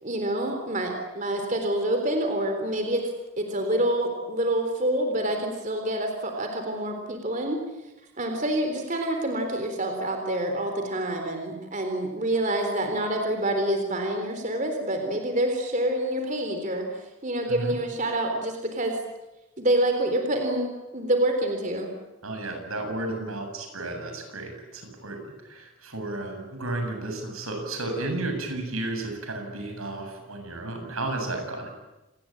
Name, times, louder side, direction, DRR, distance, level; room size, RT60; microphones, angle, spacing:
voice 1, 0.0-3.1 3.4-7.6 8.2-16.9 17.2-19.0 19.6-21.9, right 1 dB, 35° right, 4 dB, 3.7 m, -27 dB
voice 2, 22.2-31.7, right 2 dB, 85° right, 4 dB, 7.7 m, -33 dB
28.0 x 20.5 x 8.8 m, 1.0 s
head